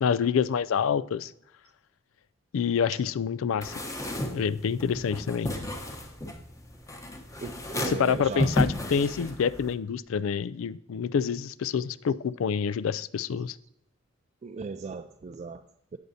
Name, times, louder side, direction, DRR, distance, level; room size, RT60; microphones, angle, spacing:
voice 1, 0.0-1.3 2.5-3.7 4.3-5.5 7.9-13.6, left 7 dB, 80° left, 17 dB, 0.3 m, -27 dB
sound 1, 3.6-9.7, left 1 dB, 15° left, 0.9 m, -33 dB
voice 2, 7.4-8.6 14.4-16.0, right 4 dB, 35° right, 8 dB, 0.3 m, -38 dB
17.0 x 6.5 x 2.7 m, 0.79 s
head